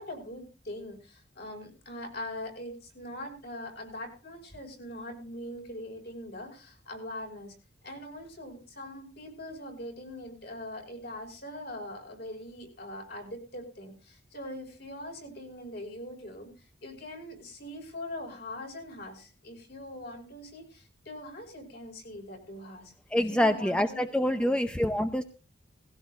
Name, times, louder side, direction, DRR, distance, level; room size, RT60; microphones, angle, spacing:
voice 1, 0.0-7.6 7.8-24.0 24.3-24.6, left 1 dB, 50° left, 3 dB, 5.4 m, -42 dB
voice 2, 23.1-25.2, left 1 dB, 5° left, 7 dB, 0.6 m, -26 dB
19.0 x 16.0 x 2.5 m, 0.32 s
head